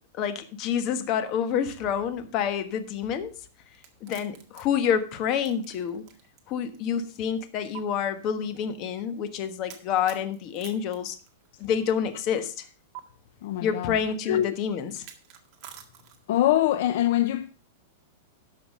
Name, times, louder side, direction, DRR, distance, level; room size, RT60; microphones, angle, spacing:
voice 1, 0.2-3.3 4.0-6.0 6.5-11.2 11.6-12.6 13.6-15.0, left 8 dB, 35° left, 1.3 m, -28 dB
sound 1, 3.7-6.4 6.7-6.8 7.7-7.8 9.7-11.8 12.9-13.0 14.9-16.4, right 10 dB, 35° right, 1.9 m, -47 dB
voice 2, 13.4-14.0 14.3-14.5 16.3-17.5, left 13 dB, 55° left, 0.6 m, -23 dB
12.0 x 6.0 x 5.3 m
supercardioid pair, 160°, 0 cm